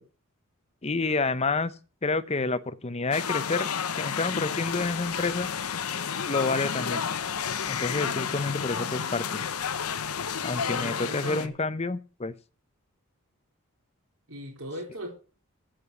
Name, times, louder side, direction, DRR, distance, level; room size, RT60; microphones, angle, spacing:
voice 1, 0.8-1.7 2.0-3.7 4.0-5.5 6.3-7.0 7.7-9.2 10.4-12.3, left 3 dB, 30° left, 14 dB, 0.7 m, -29 dB
sound 1, 3.1-11.5, left 7 dB, 90° left, 0.9 m, -31 dB
voice 2, 10.7-11.5 14.3-15.1, right 1 dB, 75° right, 0 dB, 3.9 m, -38 dB
9.0 x 8.8 x 6.7 m, 0.36 s
head